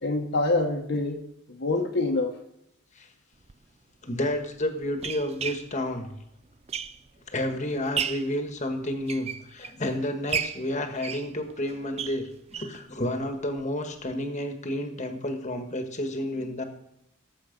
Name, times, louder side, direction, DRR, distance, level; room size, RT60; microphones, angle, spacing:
voice 1, 0.0-2.3, left 2 dB, 50° left, 0 dB, 1.1 m, -26 dB
sound 1, 3.4-3.5 4.3-7.3 7.7-8.4 8.9-9.9 10.3-12.8 13.2-13.3 13.6-13.7 14.0-14.1, right 7 dB, 30° right, 0.4 m, -34 dB
voice 2, 4.0-6.1 7.3-16.6, left 1 dB, 30° left, 6 dB, 1.4 m, -30 dB
18.0 x 7.5 x 5.2 m, 0.82 s
head